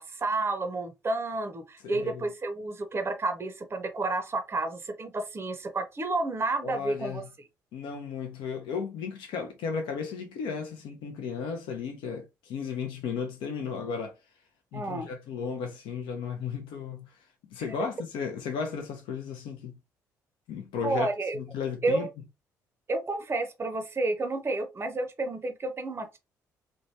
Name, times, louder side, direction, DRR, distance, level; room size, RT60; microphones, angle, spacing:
voice 1, 0.0-7.2 14.7-15.1 20.8-21.4 21.8-22.1 22.9-26.2, right 2 dB, 25° right, 0.6 m, -30 dB
voice 2, 1.8-2.2 6.6-7.2 7.7-14.2 14.7-17.2 17.5-19.8 20.5-21.1 21.3-22.1, left 6 dB, 65° left, 0.6 m, -34 dB
3.0 x 2.2 x 2.7 m
hypercardioid pair, 50°, 9 cm